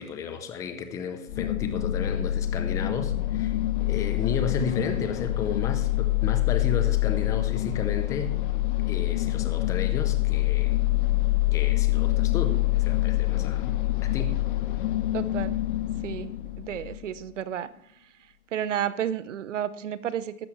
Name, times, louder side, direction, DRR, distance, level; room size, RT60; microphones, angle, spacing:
voice 1, 0.0-8.4 8.9-10.8 11.5-13.7 14.0-14.4, left 5 dB, 10° left, 8 dB, 0.5 m, -33 dB
sound 1, 1.3-17.2, left 16 dB, 35° left, 1.0 m, -26 dB
voice 2, 15.1-15.6 16.0-16.3 16.6-17.7 18.5-20.5, right 10 dB, 60° right, 16 dB, 1.0 m, -31 dB
14.5 x 12.5 x 3.2 m, 0.71 s
hypercardioid pair, 135°, 42 cm